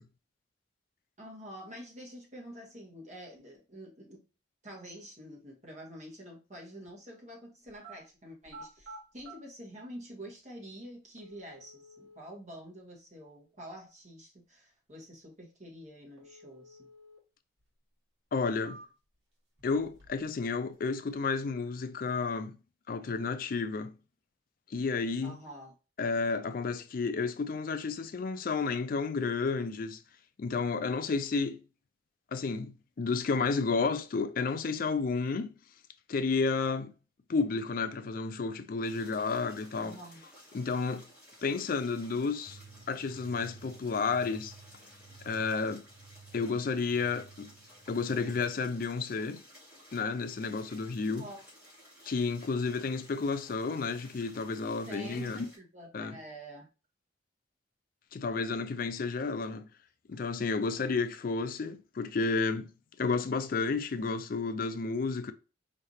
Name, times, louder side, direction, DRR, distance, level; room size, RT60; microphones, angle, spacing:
voice 1, 1.2-4.2 4.6-16.9 25.2-25.7 39.7-40.2 51.2-51.5 54.9-56.7, equal, 40° right, 1.7 m, -47 dB
sound 1, 7.7-8.0 8.4-9.4 10.4-10.5 11.2-12.2 16.2-17.2 17.6-17.7 18.3-19.2 19.6-20.3 20.6-21.2, right 2 dB, 75° right, 1.5 m, -51 dB
voice 2, 18.3-18.8 19.6-22.6 22.9-23.9 24.7-25.4 26.0-30.0 30.4-31.6 32.3-35.5 36.1-36.9 37.3-40.0 40.5-41.0 41.4-42.6 42.9-44.5 45.3-45.8 46.3-47.5 47.9-49.4 49.9-51.3 52.1-55.4 55.9-56.2 58.1-59.7 60.1-62.7 63.0-65.3, left 4 dB, 50° left, 0.4 m, -31 dB
sound 2, 38.8-55.6, equal, 5° right, 2.6 m, -56 dB
sound 3, 42.5-48.6, right 4 dB, 60° right, 1.5 m, -55 dB
4.8 x 3.2 x 2.7 m
head